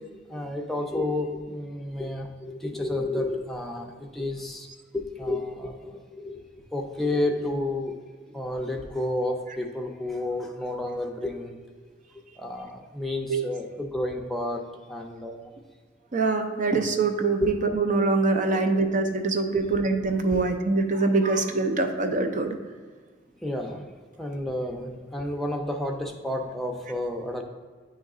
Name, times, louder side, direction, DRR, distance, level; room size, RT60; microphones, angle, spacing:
voice 1, 0.0-4.7 4.9-8.0 8.3-11.5 12.1-14.6 14.9-15.5 19.5-19.7 20.3-20.4 23.4-27.4, left 1 dB, ahead, 1 dB, 0.6 m, -31 dB
voice 2, 16.1-22.6, right 3 dB, 45° right, 6 dB, 0.5 m, -24 dB
8.7 x 3.1 x 3.7 m, 1.5 s
head